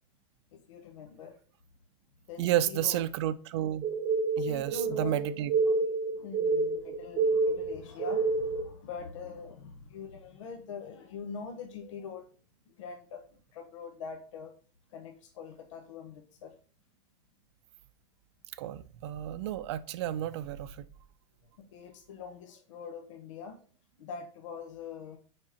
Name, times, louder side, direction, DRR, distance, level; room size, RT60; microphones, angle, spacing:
voice 1, 0.5-1.4 2.3-3.0 4.4-5.4 5.7-5.8 6.1-12.3 12.7-13.2 13.5-14.5 14.9-16.5 21.6-23.6 24.0-25.2, left 6 dB, 90° left, 1.1 m, -44 dB
voice 2, 2.4-3.8 4.4-5.5 18.6-20.8, right 12 dB, 60° right, 0.6 m, -31 dB
sound 1, 3.8-8.7, right 4 dB, 25° right, 0.9 m, -28 dB
6.3 x 4.9 x 4.4 m
supercardioid pair, 165°, 16 cm